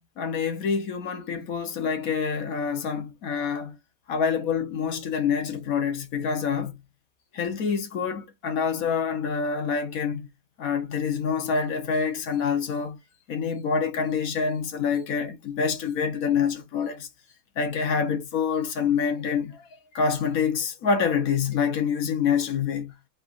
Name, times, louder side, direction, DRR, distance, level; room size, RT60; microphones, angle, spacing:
voice 1, 0.2-3.8 4.1-6.8 7.3-10.3 10.6-13.0 13.3-17.1 17.6-19.7 19.9-22.9, left 6 dB, 60° left, 1.2 m, -26 dB
4.3 x 3.9 x 2.4 m
omnidirectional pair, 1.9 m